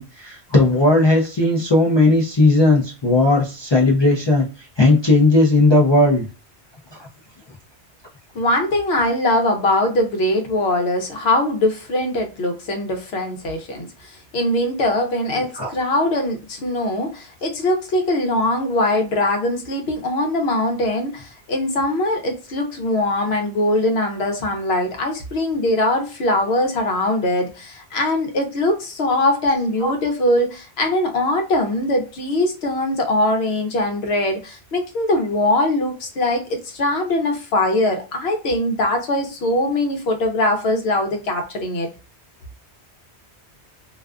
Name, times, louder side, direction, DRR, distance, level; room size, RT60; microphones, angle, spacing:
voice 1, 0.0-6.2 6.9-7.1 15.5-15.7 29.8-29.9, left 2 dB, 45° left, 0.3 m, -16 dB
voice 2, 8.3-41.9, left 1 dB, 70° left, 0.9 m, -21 dB
2.5 x 2.2 x 2.3 m
omnidirectional pair, 1.1 m